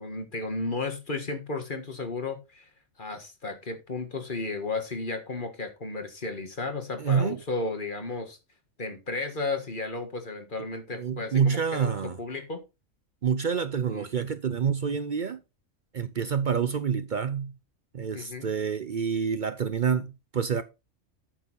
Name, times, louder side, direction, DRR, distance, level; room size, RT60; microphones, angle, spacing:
voice 1, 0.0-2.7 3.0-8.4 8.8-12.6 13.9-14.1 18.1-18.5, left 3 dB, 40° left, 1.7 m, -34 dB
voice 2, 7.0-7.4 11.0-12.2 13.2-15.4 15.9-17.5 17.9-20.6, right 6 dB, 50° right, 0.6 m, -27 dB
8.9 x 6.9 x 4.2 m
omnidirectional pair, 1.4 m